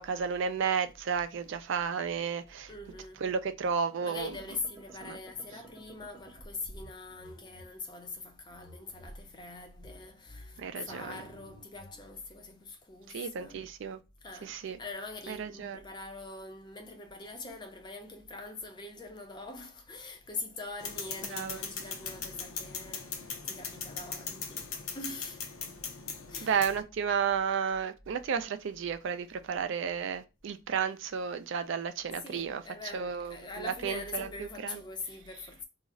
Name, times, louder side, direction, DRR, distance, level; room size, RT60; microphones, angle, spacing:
voice 1, 0.0-2.7 3.2-4.4 5.0-5.2 10.6-11.2 13.1-14.0 14.4-14.8 15.3-15.8 21.3-21.6 26.4-32.6 32.9-34.8, right 6 dB, 60° right, 0.4 m, -32 dB
voice 2, 2.7-3.2 4.0-13.7 14.2-25.4 26.3-26.6 32.2-35.6, left 3 dB, 20° left, 0.5 m, -43 dB
sound 1, 3.9-7.6 8.5-12.0, right 1 dB, 15° right, 0.8 m, -52 dB
sound 2, 20.8-26.8, left 6 dB, 85° left, 0.6 m, -40 dB
2.4 x 2.0 x 3.6 m
head